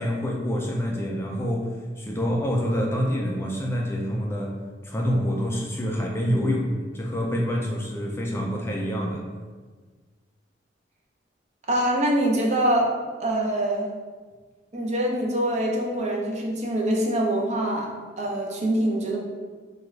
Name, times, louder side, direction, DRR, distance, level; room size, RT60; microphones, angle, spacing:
voice 1, 0.0-4.5 4.8-9.3, equal, 15° left, -1 dB, 0.4 m, -27 dB
voice 2, 11.7-12.9 13.2-13.9 14.7-17.9 18.2-19.2, right 1 dB, 40° right, -1 dB, 0.6 m, -24 dB
4.8 x 2.3 x 3.2 m, 1.4 s
head